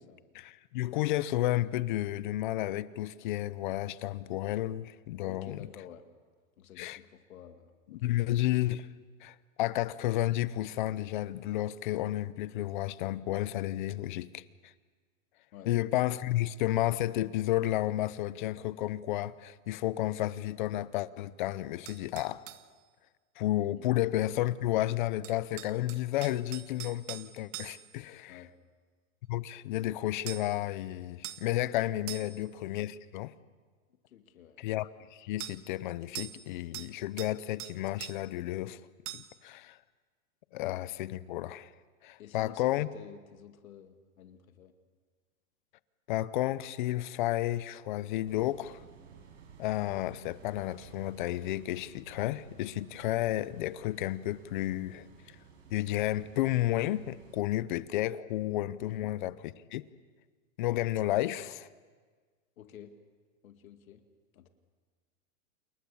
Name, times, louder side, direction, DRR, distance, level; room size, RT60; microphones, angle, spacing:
voice 1, 0.3-5.7 6.8-7.0 7.9-8.9 9.2-14.7 15.7-22.4 23.4-28.4 29.3-33.3 34.6-38.8 39.1-39.8 40.5-41.7 42.0-42.9 46.1-48.8 49.6-55.1 55.7-59.8 60.6-61.7, left 15 dB, 35° left, 0.6 m, -32 dB
voice 2, 5.2-6.0 6.6-8.1 15.5-15.7 23.8-23.9 28.3-28.5 32.2-32.4 34.1-34.6 40.5-40.6 42.2-44.7 58.8-59.1 62.6-62.9 63.4-64.0 64.3-64.5, left 9 dB, 80° left, 2.2 m, -50 dB
sound 1, 21.9-22.7 25.2-28.0 30.3-30.6 31.2-31.5 32.1-32.5 35.4-35.6 36.1-36.5 36.7-37.3 37.6-38.2 39.1-39.4, right 15 dB, 25° right, 0.7 m, -43 dB
sound 2, 48.3-57.4, right 6 dB, 55° right, 6.0 m, -55 dB
28.0 x 21.0 x 7.1 m
supercardioid pair, 160°, 41 cm